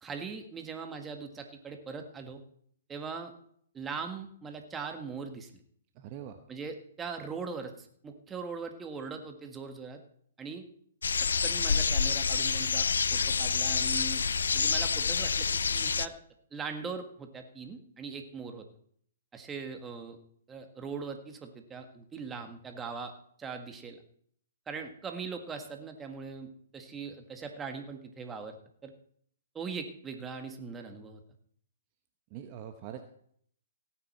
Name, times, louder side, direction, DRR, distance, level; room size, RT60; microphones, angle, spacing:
voice 1, 0.0-2.4 2.9-3.3 3.7-5.5 6.5-10.0 10.4-10.6 11.4-14.2 14.5-16.2 16.5-18.7 19.3-20.2 20.5-23.1 23.4-24.0 24.7-28.6 28.8-28.9 29.5-31.2, right 5 dB, 15° right, 5 dB, 1.6 m, -40 dB
voice 2, 6.0-6.4 32.3-33.0, right 10 dB, 35° right, 6 dB, 1.1 m, -43 dB
sound 1, 11.0-16.1, left 5 dB, 75° left, 0.4 m, -28 dB
16.5 x 9.1 x 4.3 m, 0.66 s
figure-of-eight pair, 125°, 0 cm